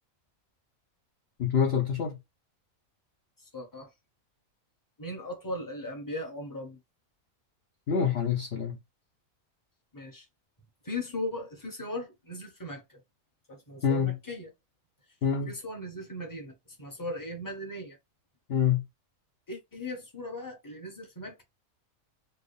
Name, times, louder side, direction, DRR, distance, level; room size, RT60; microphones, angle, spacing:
voice 1, 1.4-2.2 7.9-8.8 13.8-14.1 15.2-15.5 18.5-18.8, left 7 dB, 55° left, 0.8 m, -26 dB
voice 2, 3.4-3.9 5.0-6.8 9.9-10.3 10.8-13.0 13.5-14.5 15.5-18.0 19.5-21.4, left 1 dB, 15° left, 1.1 m, -38 dB
4.6 x 2.4 x 3.2 m
omnidirectional pair, 1.5 m